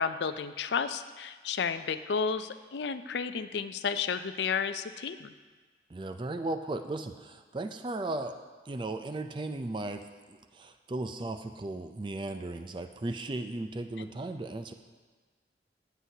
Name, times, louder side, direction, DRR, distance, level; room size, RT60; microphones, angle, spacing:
voice 1, 0.0-5.3, left 6 dB, 70° left, 11 dB, 0.4 m, -32 dB
voice 2, 5.9-8.4 8.7-14.7, right 2 dB, 25° right, 8 dB, 0.4 m, -36 dB
15.0 x 8.0 x 2.8 m, 1.4 s
head